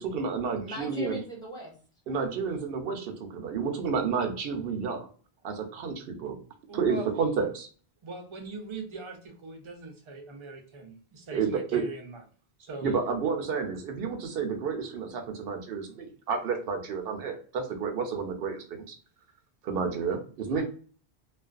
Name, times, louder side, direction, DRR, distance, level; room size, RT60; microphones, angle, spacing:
voice 1, 0.0-1.2 2.1-5.1 5.4-6.4 6.7-7.7 11.3-11.8 12.8-19.0 19.6-20.6, right 5 dB, 70° right, 5 dB, 0.7 m, -30 dB
voice 2, 0.6-1.7 20.5-20.6, equal, 5° left, -4 dB, 0.8 m, -38 dB
voice 3, 6.7-7.1 8.0-12.2 12.6-12.9, right 3 dB, 40° right, 3 dB, 0.5 m, -41 dB
2.4 x 2.2 x 2.3 m, 0.41 s
omnidirectional pair, 1.0 m